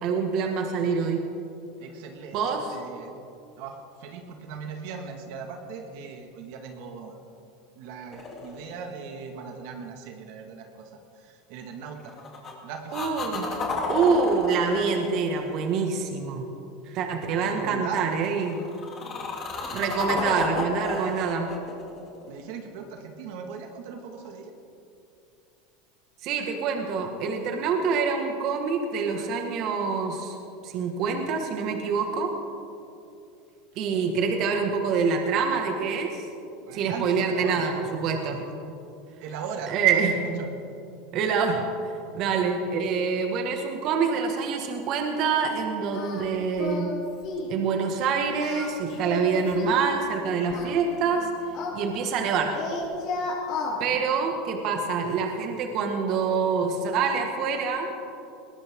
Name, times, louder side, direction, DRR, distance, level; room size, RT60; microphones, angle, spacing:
voice 1, 0.0-1.3 2.3-2.8 12.9-13.5 13.9-16.5 16.9-18.6 19.7-21.5 26.2-30.4 30.6-32.3 33.8-36.3 36.7-38.4 39.7-40.4 41.1-46.9 47.5-51.3 51.7-52.6 53.8-57.9, right 5 dB, 50° right, 3 dB, 1.9 m, -26 dB
voice 2, 1.8-3.1 3.6-7.2 7.8-12.1 12.6-13.1 17.4-18.1 20.1-20.5 22.2-24.5 36.7-37.7 38.2-38.5 39.2-40.5 53.6-54.1, right 6 dB, 65° right, 3 dB, 1.9 m, -39 dB
sound 1, 8.1-9.3 12.0-12.5 12.9-16.2 18.4-22.8 26.6-26.7, left 3 dB, 30° left, 3.2 m, -32 dB
Singing, 45.9-46.2 46.6-47.0 47.2-47.5 48.3-49.9 50.5-52.3 52.5-53.8, left 4 dB, 55° left, 5.1 m, -33 dB
21.0 x 18.0 x 3.8 m, 2.6 s
supercardioid pair, 130°, 0 cm